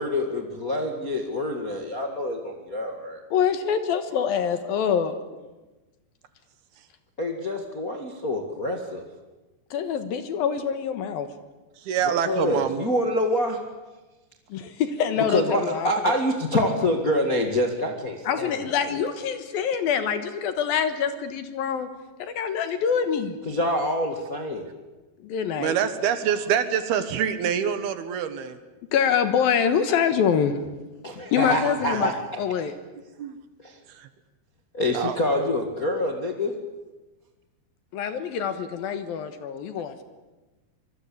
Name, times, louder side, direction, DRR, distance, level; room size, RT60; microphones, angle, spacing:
voice 1, 0.0-3.2 7.2-9.0 12.2-13.6 15.3-19.0 23.4-24.6 31.0-32.1 33.6-33.8 34.7-36.5, left 1 dB, 35° left, 3 dB, 1.4 m, -26 dB
voice 2, 3.3-5.2 9.7-11.3 14.5-15.9 18.3-21.9 22.2-23.4 25.2-25.8 28.9-30.6 31.3-32.1 32.4-32.7 37.9-40.0, left 7 dB, 65° left, 10 dB, 2.9 m, -25 dB
voice 3, 11.9-12.8 25.6-28.6 31.5-32.1 33.2-33.4 34.9-35.3, right 8 dB, 70° right, 11 dB, 3.2 m, -26 dB
26.0 x 21.5 x 8.5 m, 1.1 s
omnidirectional pair, 4.9 m